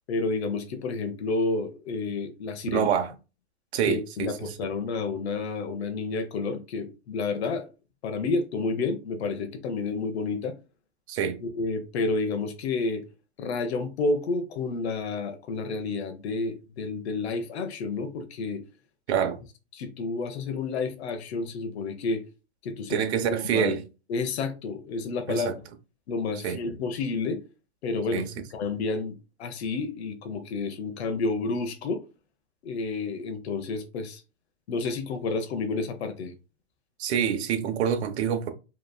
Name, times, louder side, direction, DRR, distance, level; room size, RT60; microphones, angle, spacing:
voice 1, 0.1-2.9 3.9-7.7 8.0-10.5 11.4-13.0 13.4-18.6 19.7-22.2 22.6-23.7 24.1-25.5 26.1-27.4 27.8-28.3 28.5-32.0 32.6-34.2 34.7-36.3, left 3 dB, 70° left, 0.8 m, -30 dB
voice 2, 2.7-3.1 3.7-4.5 11.1-11.4 19.1-19.4 22.9-23.8 25.3-25.5 26.4-26.6 28.1-28.3 37.0-38.5, right 8 dB, 70° right, 0.9 m, -26 dB
5.2 x 3.1 x 2.2 m
hypercardioid pair, 145°, 34 cm